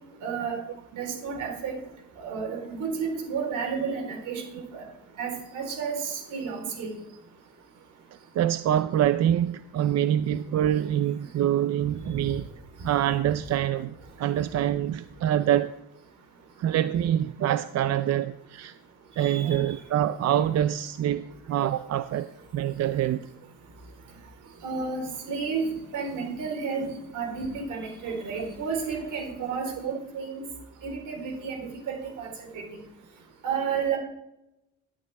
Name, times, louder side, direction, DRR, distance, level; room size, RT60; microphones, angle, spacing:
voice 1, 0.2-0.6 0.9-1.8 2.2-4.8 5.2-6.9 19.2-19.7 24.6-30.4 30.8-32.3 32.5-32.6 33.4-34.0, right 5 dB, 85° right, 3.9 m, -32 dB
voice 2, 8.3-12.5 12.8-15.8 16.6-18.7 19.2-23.3 29.8-30.0, right 11 dB, 60° right, 0.5 m, -25 dB
11.5 x 11.0 x 3.4 m
cardioid pair, 90°, 30 cm